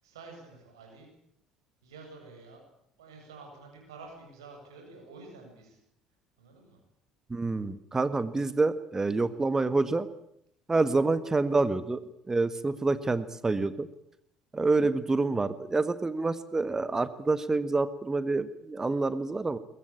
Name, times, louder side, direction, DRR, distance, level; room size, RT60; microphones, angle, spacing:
voice 1, 0.0-1.1 1.8-2.6 3.0-5.8 6.4-6.8, right 3 dB, 75° right, 2 dB, 7.9 m, -49 dB
voice 2, 7.3-10.1 10.7-13.9 14.5-19.6, right 3 dB, 20° right, 13 dB, 1.7 m, -27 dB
23.0 x 20.5 x 8.9 m, 0.72 s
figure-of-eight pair, 55°, 3 cm